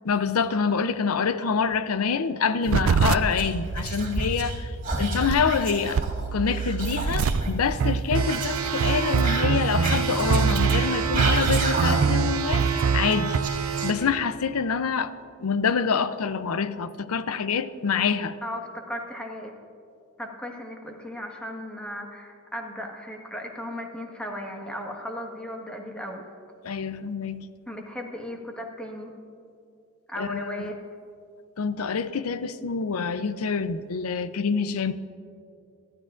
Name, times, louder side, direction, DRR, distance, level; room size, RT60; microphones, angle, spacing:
voice 1, 0.0-6.0 6.3-13.4 13.8-15.1 15.4-18.4 26.6-27.5 30.2-30.6 31.6-34.9, left 6 dB, 90° left, 0.6 m, -26 dB
sound 1, 2.7-13.4, right 5 dB, 65° right, 0.4 m, -25 dB
Whispering, 3.0-4.6 4.8-7.5 8.2-12.2 12.5-14.3, right 2 dB, 40° right, 2.2 m, -31 dB
sound 2, 8.1-13.9, right 7 dB, 85° right, 1.0 m, -29 dB
voice 2, 18.4-19.5 20.2-26.2 27.7-29.1 30.1-30.8, equal, 5° left, 1.5 m, -36 dB
27.0 x 12.5 x 2.5 m
head